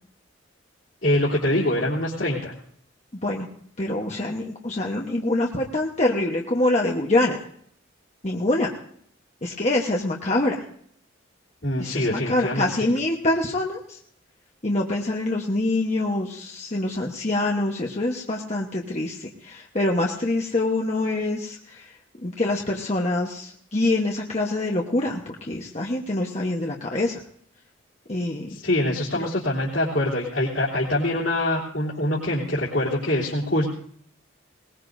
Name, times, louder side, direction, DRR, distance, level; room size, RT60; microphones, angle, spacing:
voice 1, 1.0-2.5 11.6-12.9 28.5-33.7, left 1 dB, 65° left, -8 dB, 3.2 m, -24 dB
voice 2, 3.8-7.4 8.2-8.7 9.4-10.6 11.8-14.0 14.6-21.9 22.2-27.2 28.1-28.6 29.2-29.3, left 2 dB, 35° left, -1 dB, 1.1 m, -25 dB
21.0 x 20.0 x 2.7 m, 0.62 s
head